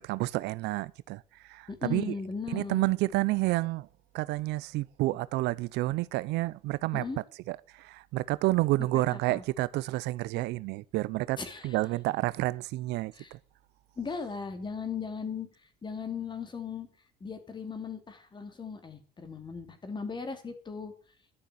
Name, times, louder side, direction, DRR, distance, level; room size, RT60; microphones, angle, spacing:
voice 1, 0.0-2.1 2.5-3.9 4.1-7.0 7.5-11.4 11.6-13.4, right 19 dB, 85° right, 0.6 m, -30 dB
voice 2, 1.7-2.9 6.9-7.2 8.9-9.4 11.4-11.8 13.1-13.3 14.0-15.5 15.8-16.9 17.2-20.9, left 5 dB, 25° left, 2.9 m, -37 dB
12.5 x 6.8 x 9.2 m
cardioid pair, 110°, 17 cm